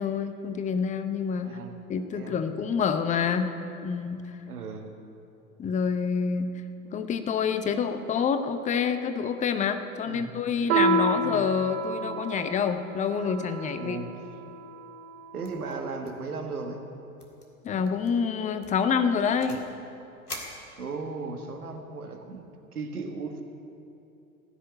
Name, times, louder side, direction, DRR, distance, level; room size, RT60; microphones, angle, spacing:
voice 1, 0.0-1.6 1.9-3.5 3.8-4.2 5.6-6.5 6.9-14.0 17.6-19.6, left 6 dB, 15° left, 9 dB, 0.7 m, -27 dB
voice 2, 1.4-1.7 2.1-2.4 4.4-4.9 6.8-6.9 10.0-10.4 11.1-11.4 13.8-14.1 15.3-16.8 20.8-23.4, right 4 dB, 75° right, 4 dB, 1.6 m, -36 dB
Piano, 10.7-15.7, right 3 dB, 55° right, 1.2 m, -30 dB
sound 1, 15.4-15.7 16.0-16.3 16.6-16.7 17.2-17.5 17.9-18.1 18.6-19.7 20.3-21.3, left 2 dB, 85° left, 2.0 m, -43 dB
16.0 x 6.6 x 9.2 m, 2.8 s
figure-of-eight pair, 90°, 44 cm